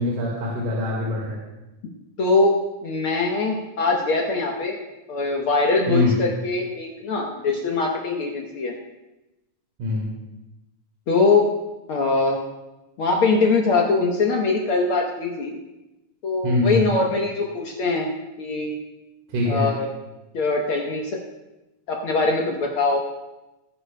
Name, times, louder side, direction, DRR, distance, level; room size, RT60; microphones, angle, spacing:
voice 1, 0.0-1.4 5.9-6.1 9.8-10.1 16.4-16.9 19.3-19.7, left 2 dB, 75° right, -4 dB, 3.5 m, -23 dB
voice 2, 2.2-2.5 2.8-4.8 5.1-8.7 11.1-11.5 11.9-12.4 13.0-15.6 16.2-18.1 18.4-18.8 19.5-19.9 20.3-21.2 21.9-23.0, left 3 dB, 75° left, 0 dB, 1.2 m, -22 dB
20.0 x 9.9 x 2.2 m, 1.0 s
omnidirectional pair, 3.8 m